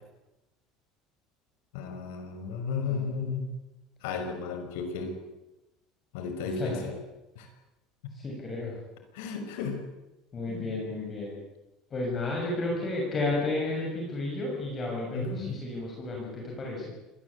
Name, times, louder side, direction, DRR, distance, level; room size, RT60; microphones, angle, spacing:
voice 1, 1.7-3.5 4.0-5.2 6.1-6.9 7.4-7.5 9.1-9.8 10.5-10.7 15.1-15.6, left 5 dB, 85° left, 6 dB, 5.8 m, -34 dB
voice 2, 2.9-3.2 6.6-6.8 8.1-8.8 10.3-11.4 11.9-16.9, left 2 dB, 25° left, -2 dB, 6.7 m, -32 dB
26.0 x 20.5 x 8.4 m, 1.0 s
cardioid pair, 160°, 0 cm